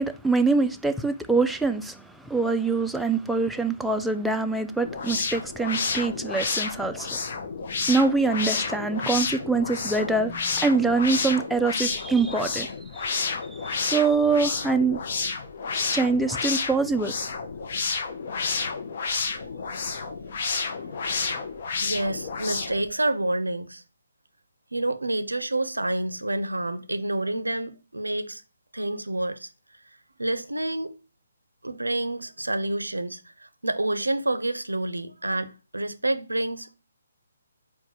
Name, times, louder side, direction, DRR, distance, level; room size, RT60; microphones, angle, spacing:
voice 1, 0.0-7.1 7.9-12.7 12.9-13.2 13.6-15.0 15.9-17.1, right 3 dB, ahead, 0.3 m, -24 dB
sound 1, 4.8-22.9, left 4 dB, 50° left, 0.6 m, -30 dB
voice 2, 20.1-21.1 21.8-23.8 24.7-28.4 28.7-29.5 30.2-30.9 31.6-33.2 33.6-36.8, right 1 dB, 90° right, 0.5 m, -28 dB
4.6 x 2.2 x 4.3 m
figure-of-eight pair, 140°, 0 cm